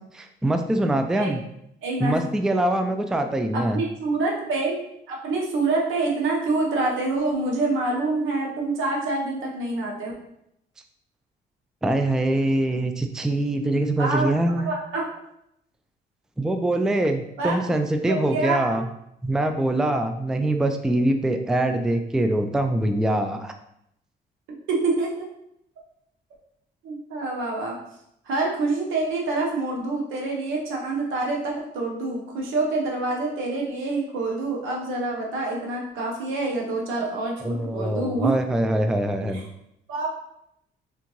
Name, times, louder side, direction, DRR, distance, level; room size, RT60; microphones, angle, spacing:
voice 1, 0.1-1.4 2.0-3.8 11.8-14.7 16.4-18.9 19.2-23.5 37.4-39.4, right 1 dB, 5° right, 6 dB, 0.3 m, -23 dB
voice 2, 1.8-2.3 3.5-4.8 5.1-10.1 14.0-14.3 14.7-15.0 17.4-17.6 18.1-18.8 24.7-25.3 26.8-27.8 28.2-38.3 39.3-39.4 39.9-40.1, right 3 dB, 85° right, -1 dB, 1.1 m, -26 dB
3.6 x 3.4 x 3.1 m, 0.77 s
cardioid pair, 90°, 20 cm